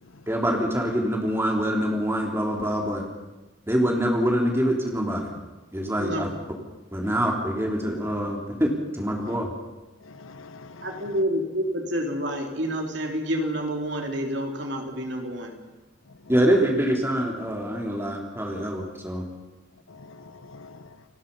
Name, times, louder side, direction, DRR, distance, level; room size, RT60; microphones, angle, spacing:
voice 1, 0.3-3.0 3.7-5.3 5.7-6.3 6.9-9.5 16.3-19.3, equal, 10° right, 0 dB, 3.7 m, -25 dB
voice 2, 6.0-6.3 10.8-15.5, equal, 60° right, 3 dB, 3.6 m, -28 dB
voice 3, 10.0-11.2 16.1-16.3 19.9-21.0, left 3 dB, 85° left, 13 dB, 1.1 m, -46 dB
30.0 x 18.5 x 5.6 m, 1.2 s
head